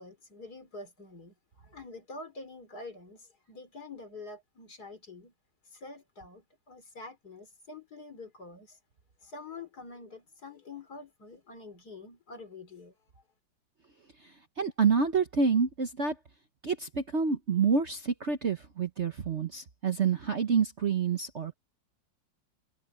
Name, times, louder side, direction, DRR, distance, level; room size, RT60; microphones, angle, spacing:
voice 1, 0.0-5.3 5.7-8.8 9.2-12.9, left 3 dB, 55° left, 4.0 m, -46 dB
voice 2, 14.6-16.1 16.6-21.5, right 5 dB, 45° right, 1.1 m, -28 dB
omnidirectional pair, 2.0 m